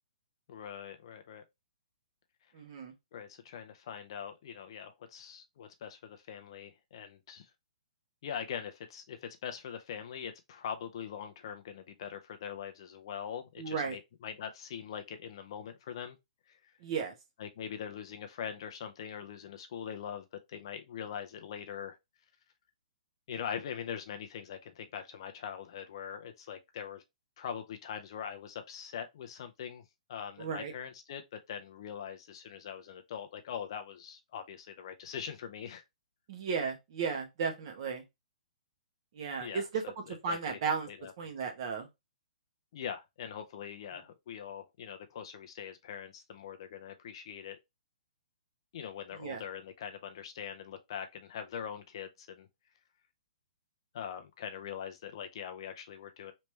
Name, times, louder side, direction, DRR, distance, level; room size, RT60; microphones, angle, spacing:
voice 1, 0.5-1.4 3.1-7.5 8.2-16.2 16.5-16.7 17.4-22.0 23.3-27.0 27.4-29.8 30.1-35.8 39.4-40.6 40.9-41.1 42.7-47.6 48.7-52.5 53.9-56.3, left 8 dB, 40° left, 0.4 m, -42 dB
voice 2, 2.5-2.9 13.6-14.0 16.8-17.1 30.4-30.7 36.3-38.0 39.1-39.8 40.2-40.9 41.2-41.9 49.2-49.4, right 5 dB, 35° right, 1.0 m, -34 dB
3.2 x 3.1 x 3.1 m
hypercardioid pair, 170°, 4 cm